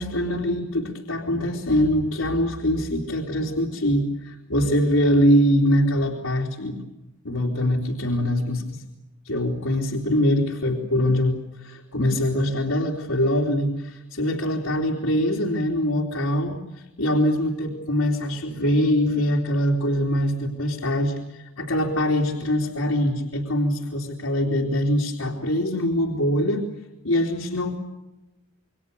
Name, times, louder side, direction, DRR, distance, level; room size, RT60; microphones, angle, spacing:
voice 1, 0.0-6.8 7.2-8.8 9.2-16.6 17.0-26.6 27.0-27.8, equal, 85° left, -1 dB, 3.3 m, -23 dB
28.5 x 23.5 x 6.9 m, 1.0 s
head